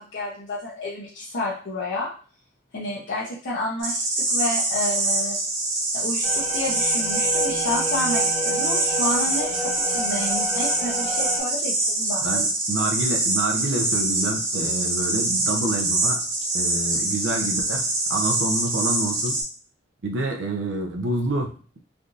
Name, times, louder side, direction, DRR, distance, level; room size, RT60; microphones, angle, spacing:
voice 1, 0.0-2.1 2.7-5.4 5.9-12.4, left 2 dB, 70° left, -7 dB, 0.7 m, -30 dB
sound 1, 3.8-19.4, right 2 dB, 85° right, 1.0 m, -24 dB
sound 2, 6.2-11.4, right 1 dB, 5° left, 0.9 m, -30 dB
voice 2, 12.2-16.2 16.5-19.4 20.0-21.5, right 2 dB, 70° right, 3 dB, 0.6 m, -27 dB
3.4 x 2.6 x 2.5 m, 0.40 s
head